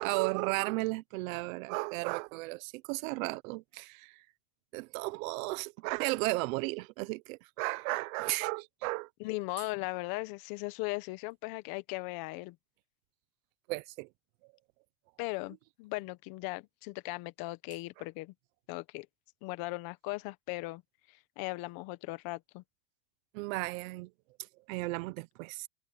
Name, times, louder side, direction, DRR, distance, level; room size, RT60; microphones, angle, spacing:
voice 1, 0.0-4.2 4.7-9.1 13.7-14.1 23.3-24.1 24.4-25.7, right 23 dB, 90° right, 0.9 m, -34 dB
voice 2, 9.2-12.5 15.2-18.3 18.7-19.1 19.4-20.8 21.4-22.6, left 22 dB, 60° left, 1.2 m, -38 dB
cardioid pair, 145°, 40 cm